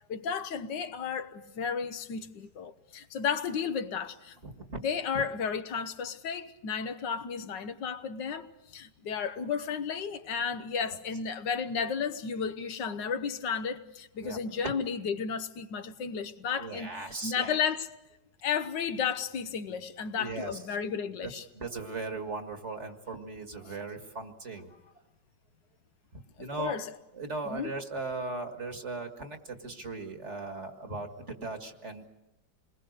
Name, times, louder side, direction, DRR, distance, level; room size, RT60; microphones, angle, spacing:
voice 1, 0.1-4.4 4.8-16.9 17.2-17.9 18.4-21.5 26.6-26.9 27.4-27.7, left 6 dB, 85° left, 1.7 m, -33 dB
voice 2, 4.4-4.8 5.1-5.2 14.2-14.4 14.6-14.7 16.6-17.6 20.2-20.6 21.2-24.8 26.1-26.8 27.1-32.1, right 3 dB, 40° right, 2.1 m, -38 dB
27.5 x 20.5 x 6.6 m
omnidirectional pair, 1.9 m